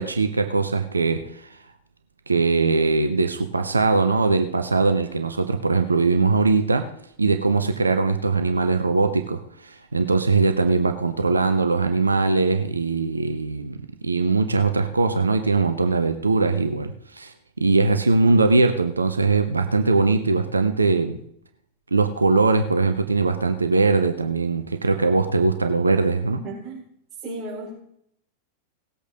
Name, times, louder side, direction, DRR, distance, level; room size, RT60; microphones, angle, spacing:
voice 1, 0.0-1.5 2.3-6.9 7.2-21.2 21.9-26.4, right 3 dB, 80° right, 8 dB, 0.9 m, -21 dB
voice 2, 26.3-26.8 27.2-27.7, right 2 dB, 25° right, -7 dB, 4.9 m, -34 dB
18.5 x 8.4 x 3.7 m, 0.70 s
figure-of-eight pair, 90°, 0 cm